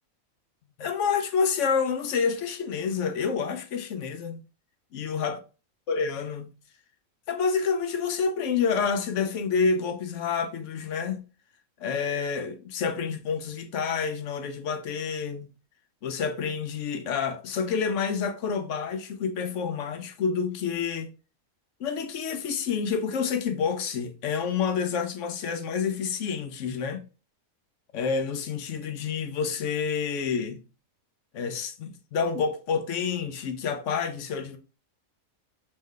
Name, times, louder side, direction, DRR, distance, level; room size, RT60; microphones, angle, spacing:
voice 1, 0.8-4.4 4.9-5.4 5.9-6.5 7.3-11.2 11.8-15.5 16.0-21.1 21.8-27.1 27.9-30.6 31.3-34.6, left 6 dB, 65° left, 0.9 m, -28 dB
3.7 x 3.2 x 3.1 m
omnidirectional pair, 1.5 m